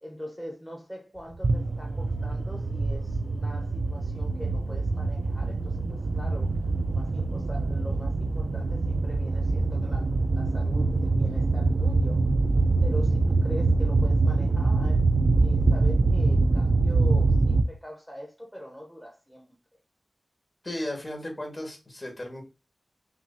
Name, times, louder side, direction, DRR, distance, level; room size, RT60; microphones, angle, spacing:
voice 1, 0.0-6.6 6.9-12.3 12.8-15.0 15.4-19.5, equal, 5° left, 0.8 m, -42 dB
sound 1, 1.4-17.6, right 3 dB, 65° right, 0.3 m, -24 dB
voice 2, 20.6-22.4, left 1 dB, 40° left, 1.7 m, -35 dB
5.7 x 2.4 x 2.7 m
wide cardioid pair, 85°, 0 cm